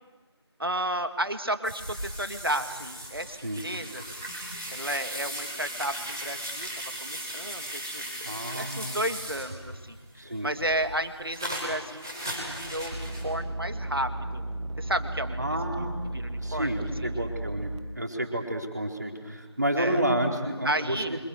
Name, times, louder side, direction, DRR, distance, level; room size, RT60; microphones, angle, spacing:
voice 1, 0.6-4.0 4.7-6.7 7.0-14.4 14.8-15.4 15.8-15.9 16.1-16.8 17.0-17.3 19.8-20.0 20.6-21.2, right 1 dB, 55° right, 8 dB, 2.4 m, -32 dB
sound 1, 1.6-9.9 10.2-13.3, equal, 10° right, 2.8 m, -37 dB
voice 2, 8.2-9.0 10.2-10.5 15.4-16.0 16.4-21.2, right 1 dB, 40° right, 1 dB, 4.3 m, -30 dB
sound 2, 12.9-17.8, right 1 dB, 85° right, 1.6 m, -34 dB
29.0 x 26.0 x 6.8 m, 1.2 s
figure-of-eight pair, 175°, 14 cm